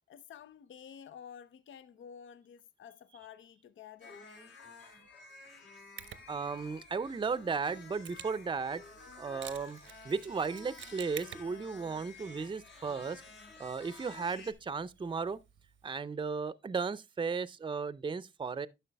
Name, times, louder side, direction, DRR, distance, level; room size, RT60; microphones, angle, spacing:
voice 1, 0.1-4.3, left 8 dB, 85° left, 0.5 m, -51 dB
sound 1, 4.0-14.5, left 4 dB, 70° left, 2.4 m, -52 dB
Mechanisms, 6.0-15.8, right 9 dB, 80° right, 0.7 m, -53 dB
voice 2, 6.3-8.8 9.2-9.8 10.0-13.2 13.6-15.4 15.8-18.7, right 5 dB, 25° right, 0.5 m, -35 dB
11.0 x 5.8 x 3.3 m
cardioid pair, 80°, 20 cm